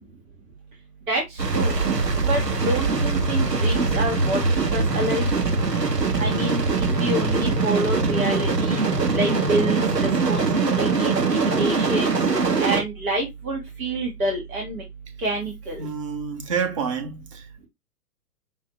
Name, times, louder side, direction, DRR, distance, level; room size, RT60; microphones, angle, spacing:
sound 1, 1.4-12.8, right 4 dB, 90° right, 1.2 m, -22 dB
voice 1, 2.7-4.4 4.7-5.3 6.2-6.6 7.0-8.8 9.1-10.4 10.7-12.2 12.6-14.8 15.2-15.8, right 1 dB, 60° right, 1.6 m, -27 dB
voice 2, 15.8-17.7, right 6 dB, 20° right, 0.4 m, -29 dB
5.6 x 2.0 x 3.0 m
figure-of-eight pair, 115°, 48 cm